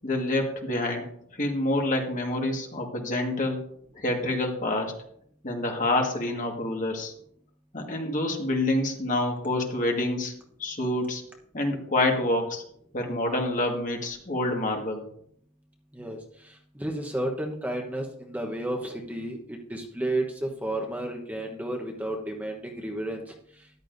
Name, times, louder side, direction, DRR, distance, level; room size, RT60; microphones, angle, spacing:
voice 1, 0.0-1.1 1.4-3.6 3.9-5.0 5.4-7.1 7.7-10.3 10.6-11.2 11.5-12.6 12.9-15.0, left 1 dB, 35° left, 2 dB, 1.7 m, -27 dB
voice 2, 16.4-23.2, right 1 dB, 5° right, 1 dB, 1.0 m, -32 dB
13.5 x 11.0 x 2.6 m, 0.65 s
head